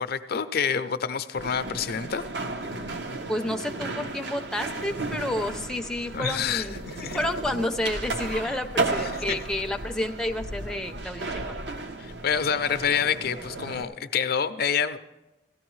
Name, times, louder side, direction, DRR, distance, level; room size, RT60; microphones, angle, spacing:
voice 1, 0.0-2.2 6.1-7.2 8.4-8.6 8.9-9.4 12.0-15.0, left 7 dB, 55° left, 10 dB, 0.5 m, -28 dB
sound 1, 1.4-13.8, right 2 dB, 70° right, 0.9 m, -34 dB
voice 2, 3.3-6.8 7.1-11.6, left 1 dB, 5° left, 4 dB, 0.5 m, -30 dB
17.5 x 13.0 x 3.1 m, 1.0 s
head